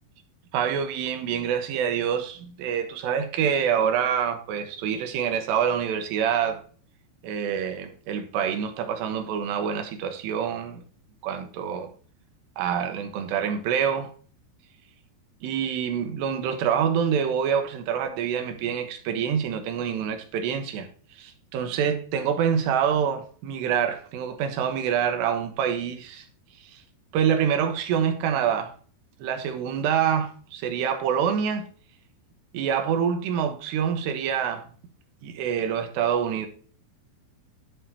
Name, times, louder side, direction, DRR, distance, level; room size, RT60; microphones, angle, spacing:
voice 1, 0.5-6.6 7.2-10.8 11.2-11.9 12.6-14.1 15.4-20.9 21.2-26.3 26.7-26.8 27.1-28.7 29.2-31.7 32.5-34.7 35.2-36.5, right 8 dB, 75° right, 3.2 m, -26 dB
11.5 x 5.7 x 2.9 m
omnidirectional pair, 5.2 m